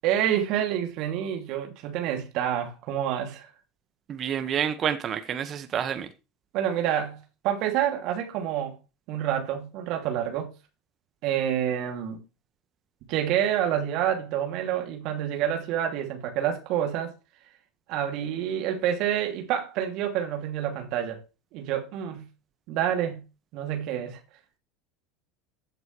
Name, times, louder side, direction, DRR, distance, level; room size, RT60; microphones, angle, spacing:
voice 1, 0.0-3.5 6.5-7.2 7.4-8.8 9.1-10.5 11.2-12.2 13.1-17.1 17.9-21.2 21.5-22.2 22.7-23.2 23.5-24.2, right 10 dB, 60° right, 2.8 m, -28 dB
voice 2, 4.1-6.1, right 8 dB, 40° right, 1.6 m, -28 dB
15.5 x 8.0 x 3.3 m
hypercardioid pair, 75°, 0 cm